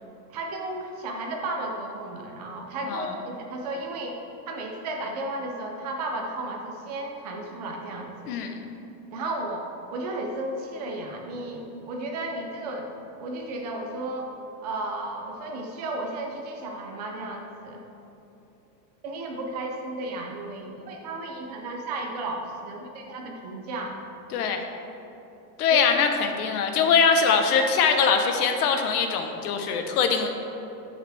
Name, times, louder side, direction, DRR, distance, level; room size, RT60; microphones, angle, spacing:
voice 1, 0.3-4.2 4.5-8.3 9.1-12.9 13.2-14.3 14.6-17.8 19.0-24.0 25.7-25.8, right 2 dB, 25° right, 1 dB, 0.5 m, -34 dB
voice 2, 8.3-8.6 24.3-24.6 25.6-30.3, left 5 dB, 65° left, 5 dB, 1.1 m, -22 dB
10.5 x 8.3 x 3.4 m, 2.9 s
supercardioid pair, 180°, 50 cm